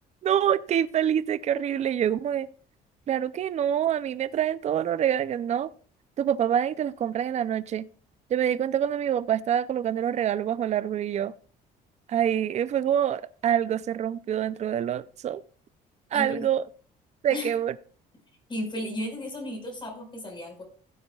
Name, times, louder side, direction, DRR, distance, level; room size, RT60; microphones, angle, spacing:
voice 1, 0.2-2.5 3.1-5.7 6.2-7.9 8.3-11.3 12.1-15.4 16.1-16.6 17.2-17.7, right 9 dB, 40° right, 0.5 m, -26 dB
voice 2, 16.1-16.5 17.3-17.5 18.5-20.6, left 1 dB, 30° left, 5.2 m, -34 dB
16.0 x 9.3 x 2.4 m
cardioid pair, 110°, 17 cm